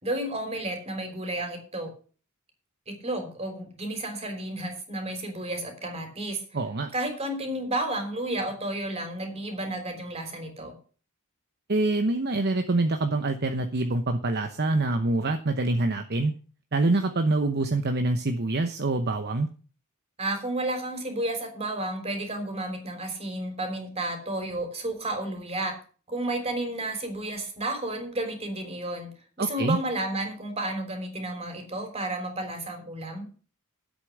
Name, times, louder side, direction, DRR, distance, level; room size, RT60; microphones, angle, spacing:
voice 1, 0.0-1.9 2.9-6.4 6.9-10.8 20.2-25.8 26.1-29.1 29.4-33.3, right 1 dB, 30° right, 6 dB, 3.5 m, -32 dB
voice 2, 6.5-6.9 11.7-16.3 16.7-19.5 29.4-29.8, right 2 dB, 50° right, 7 dB, 0.9 m, -25 dB
10.0 x 8.3 x 6.4 m, 0.39 s
head